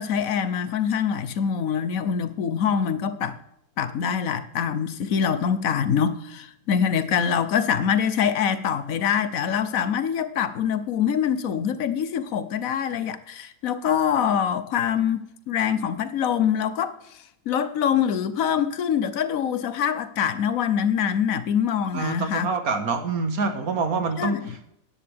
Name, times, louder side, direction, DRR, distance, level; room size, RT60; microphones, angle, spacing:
voice 1, 0.0-3.4 3.8-22.5 24.2-24.5, left 8 dB, 70° left, 1.2 m, -24 dB
voice 2, 21.9-24.4, right 4 dB, 80° right, 1.8 m, -26 dB
13.5 x 10.5 x 3.5 m
omnidirectional pair, 1.5 m